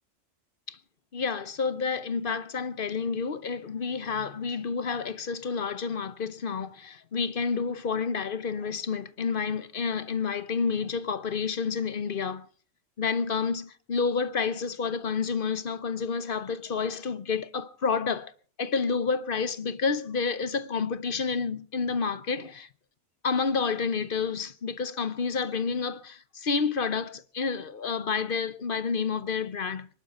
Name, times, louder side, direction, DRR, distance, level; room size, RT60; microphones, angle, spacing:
voice 1, 1.1-12.5 13.0-18.3 18.6-22.7 23.2-29.9, left 5 dB, 50° left, 1.0 m, -29 dB
25.5 x 11.5 x 4.3 m
omnidirectional pair, 1.2 m